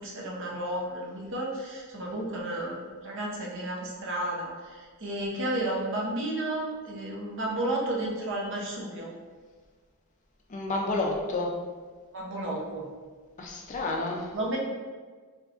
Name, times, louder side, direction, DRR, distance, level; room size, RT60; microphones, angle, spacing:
voice 1, 0.0-9.1 12.1-12.9 14.3-14.6, right 1 dB, 55° right, -3 dB, 0.7 m, -32 dB
voice 2, 10.5-11.5 13.4-14.3, left 2 dB, 35° left, 0 dB, 0.4 m, -30 dB
3.5 x 2.8 x 2.4 m, 1.5 s
head